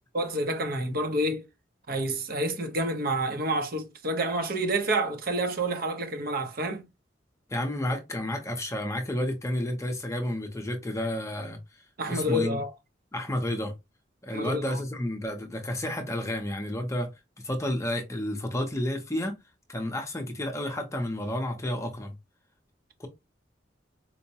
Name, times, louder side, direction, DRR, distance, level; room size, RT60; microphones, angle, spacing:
voice 1, 0.1-1.4 1.9-6.8 12.0-12.7 14.3-14.8, right 1 dB, 55° right, 0.8 m, -28 dB
voice 2, 7.5-11.6 12.1-12.6 13.1-13.7 14.2-17.1 17.4-19.4 19.7-22.1 23.0-23.1, left 1 dB, 15° left, 0.6 m, -31 dB
4.5 x 2.1 x 2.7 m
head